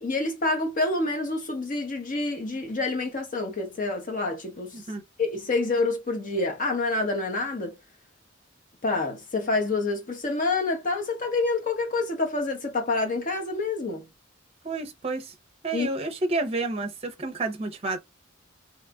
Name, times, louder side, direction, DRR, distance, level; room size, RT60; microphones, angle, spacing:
voice 1, 0.0-4.8 5.2-7.8 8.8-14.1 15.7-15.9, left 3 dB, 40° left, 0.8 m, -27 dB
voice 2, 14.6-15.3 15.6-18.0, right 2 dB, 30° right, 0.6 m, -30 dB
3.0 x 2.4 x 3.4 m
head